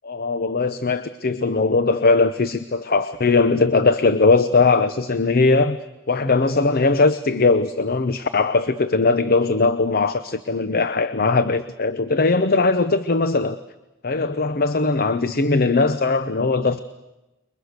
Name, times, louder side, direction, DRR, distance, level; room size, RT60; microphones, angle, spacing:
voice 1, 0.0-5.8 6.1-13.6 14.0-16.8, left 3 dB, 45° left, 12 dB, 0.8 m, -19 dB
29.5 x 23.0 x 6.6 m, 1.0 s
head